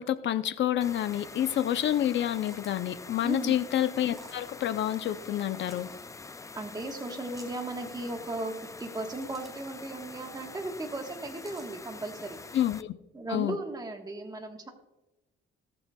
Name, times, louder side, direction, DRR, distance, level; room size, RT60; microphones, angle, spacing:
voice 1, 0.0-5.9 12.5-12.9 13.3-13.6, left 11 dB, 70° left, 12 dB, 0.6 m, -28 dB
sound 1, 0.8-12.8, left 3 dB, 15° left, 0.4 m, -45 dB
sound 2, 2.2-2.9 4.0-4.4 5.4-6.0 7.2-7.6 8.9-9.7 11.3-11.7, equal, ahead, 3.9 m, -53 dB
voice 2, 3.2-3.6 6.5-12.4 13.1-14.7, right 2 dB, 20° right, 3 dB, 1.4 m, -36 dB
18.5 x 7.0 x 2.3 m, 1.0 s
cardioid pair, 90°, 20 cm